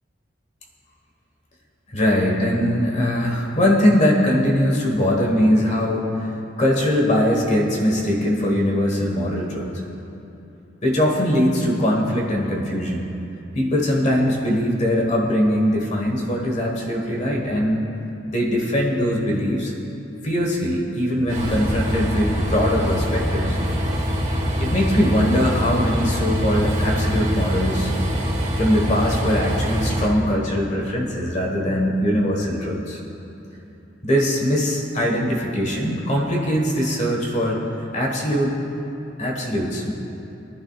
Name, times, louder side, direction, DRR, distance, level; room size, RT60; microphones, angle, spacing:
voice 1, 1.9-6.3 6.6-9.7 10.8-13.1 13.5-17.9 18.3-19.7 20.2-23.6 24.6-27.9 28.6-33.0 34.0-37.6 37.9-38.6 39.2-39.9, equal, 40° left, -1 dB, 1.5 m, -21 dB
Train, 21.3-30.1, equal, 35° right, 1.6 m, -24 dB
23.0 x 11.0 x 2.5 m, 2.9 s
head